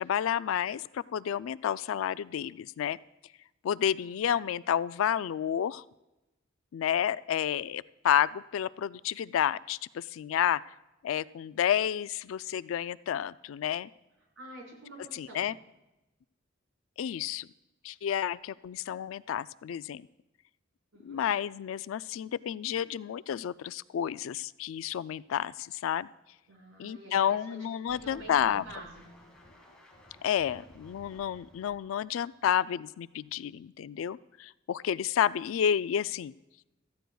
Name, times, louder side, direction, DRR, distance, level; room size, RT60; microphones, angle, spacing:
voice 1, 0.0-3.0 3.6-5.8 6.7-10.6 11.0-13.9 15.1-15.5 17.0-17.5 17.8-20.1 21.0-26.1 26.8-28.6 30.2-36.3, left 9 dB, 70° left, 17 dB, 0.3 m, -30 dB
voice 2, 3.9-4.5 14.4-15.4 20.9-21.2 26.5-27.6 28.0-29.0, right 2 dB, 70° right, -3 dB, 4.4 m, -48 dB
sound 1, 27.9-32.7 33.2-33.3, equal, 5° left, 2.2 m, -56 dB
17.0 x 14.0 x 2.3 m, 0.97 s
head